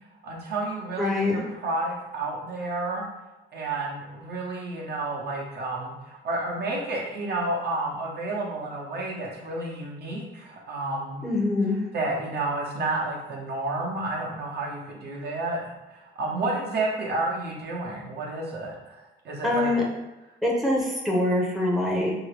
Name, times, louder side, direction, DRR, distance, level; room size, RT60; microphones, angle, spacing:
voice 1, 0.2-3.0 3.5-11.2 11.9-19.7, right 2 dB, 55° right, -2 dB, 0.9 m, -31 dB
voice 2, 1.0-1.4 11.2-11.8 19.4-19.8 20.4-22.1, left 2 dB, ahead, -3 dB, 0.7 m, -24 dB
2.8 x 2.8 x 3.3 m, 1.0 s
cardioid pair, 90°, 20 cm